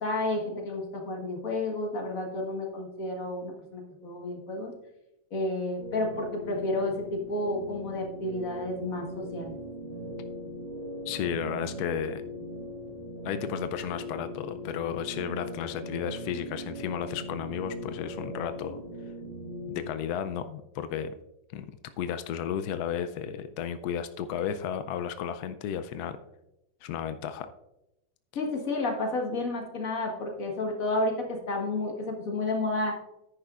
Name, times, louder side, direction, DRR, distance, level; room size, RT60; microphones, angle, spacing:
voice 1, 0.0-4.7 5.3-9.6 28.4-33.0, left 2 dB, 45° left, 1 dB, 1.8 m, -31 dB
sound 1, 5.8-19.9, left 1 dB, 80° right, 2.3 m, -40 dB
voice 2, 11.1-12.2 13.2-18.8 19.7-21.1 21.5-21.7 22.0-26.2 26.8-27.5, left 8 dB, 80° left, 10 dB, 0.8 m, -33 dB
10.0 x 9.9 x 2.4 m, 0.91 s
omnidirectional pair, 2.2 m